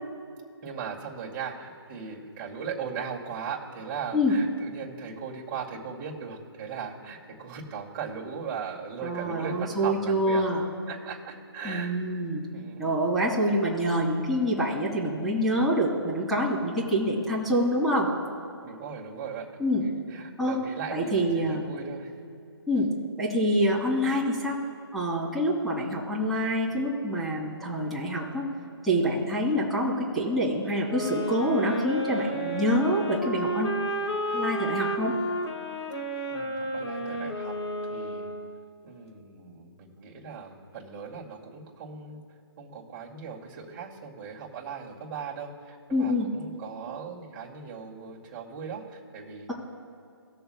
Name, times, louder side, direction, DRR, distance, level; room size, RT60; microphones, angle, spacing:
voice 1, 0.6-10.4 10.9-11.9 12.5-13.0 18.6-22.1 25.8-25.9 36.3-37.6 37.9-38.3 38.8-42.2 42.6-49.5, right 6 dB, 25° right, -4 dB, 2.2 m, -38 dB
voice 2, 9.0-10.6 11.6-12.5 12.8-18.1 19.6-19.9 20.4-20.6 20.9-21.6 22.7-22.9 23.2-24.6 24.9-28.5 28.8-33.8 34.3-35.1 45.9-46.3, equal, ahead, -8 dB, 2.2 m, -26 dB
sound 1, 30.8-38.7, right 1 dB, 85° left, 1.7 m, -32 dB
20.0 x 6.8 x 2.2 m, 2.4 s
figure-of-eight pair, 150°, 14 cm